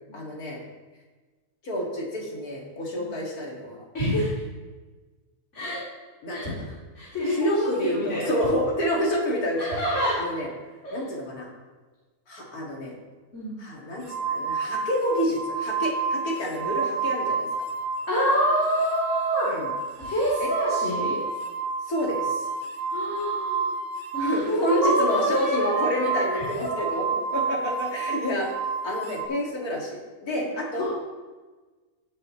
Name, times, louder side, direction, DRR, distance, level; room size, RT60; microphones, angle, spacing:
voice 1, 0.1-0.6 1.6-3.9 6.2-6.7 7.3-9.8 10.2-10.5 10.9-11.5 12.3-12.9 13.6-17.7 19.4-19.7 20.4-20.5 21.9-22.5 24.2-28.5 28.8-30.8, equal, 75° left, -2 dB, 2.7 m, -28 dB
voice 2, 3.9-4.3 5.5-5.8 6.3-6.5 6.9-8.3 9.6-10.1 10.8-11.0 13.3-13.6 18.1-19.5 20.0-21.2 22.9-23.8 24.1-26.3 30.8-30.9, equal, 50° left, -10 dB, 3.8 m, -26 dB
sound 1, 14.1-18.0 18.3-29.3, right 5 dB, 75° right, 1.5 m, -30 dB
17.5 x 7.7 x 3.1 m, 1.3 s
omnidirectional pair, 1.6 m